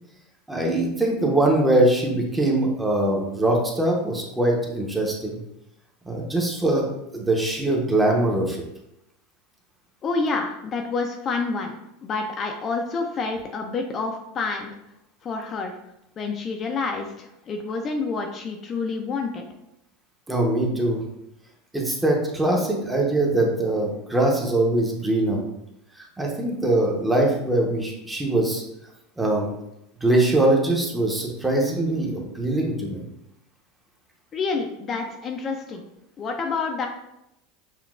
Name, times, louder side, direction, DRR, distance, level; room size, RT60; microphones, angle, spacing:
voice 1, 0.5-5.3 6.1-6.9 7.1-8.6 20.3-21.0 21.7-25.4 26.2-28.6 29.2-29.5 30.0-33.0, right 1 dB, 10° right, -1 dB, 0.7 m, -22 dB
voice 2, 10.0-11.8 12.0-14.7 15.2-15.8 16.2-19.5 34.3-35.8 36.2-36.9, left 4 dB, 30° left, 3 dB, 0.4 m, -28 dB
5.7 x 2.2 x 2.3 m, 0.85 s
supercardioid pair, 125°, 0 cm